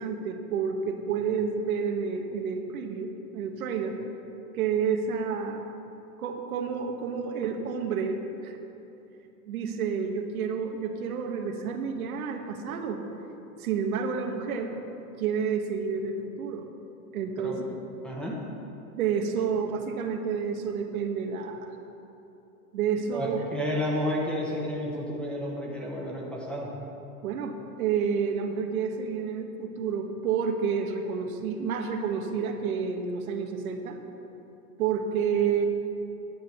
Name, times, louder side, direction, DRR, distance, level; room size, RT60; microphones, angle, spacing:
voice 1, 0.0-4.0 4.5-5.7 6.2-8.6 9.5-13.0 13.6-14.8 15.2-16.6 17.1-17.6 19.0-21.7 22.7-23.4 27.2-34.0 34.8-35.7, right 6 dB, 65° right, 4 dB, 1.2 m, -29 dB
voice 2, 18.0-18.3 23.1-26.7, equal, ahead, -4 dB, 1.2 m, -31 dB
10.5 x 6.5 x 6.5 m, 2.9 s
hypercardioid pair, 135°, 46 cm